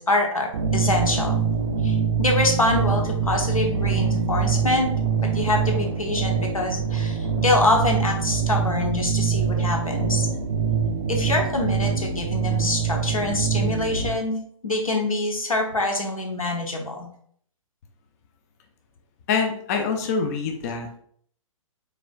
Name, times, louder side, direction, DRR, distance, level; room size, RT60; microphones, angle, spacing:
voice 1, 0.0-1.4 1.8-4.9 5.2-10.3 11.1-17.1, left 2 dB, 80° left, 2 dB, 1.1 m, -25 dB
sound 1, 0.5-14.1, right 6 dB, 50° right, 0.5 m, -24 dB
voice 2, 19.3-21.0, left 5 dB, 30° left, 4 dB, 0.4 m, -25 dB
4.8 x 3.6 x 2.4 m, 0.62 s
figure-of-eight pair, 125°, 18 cm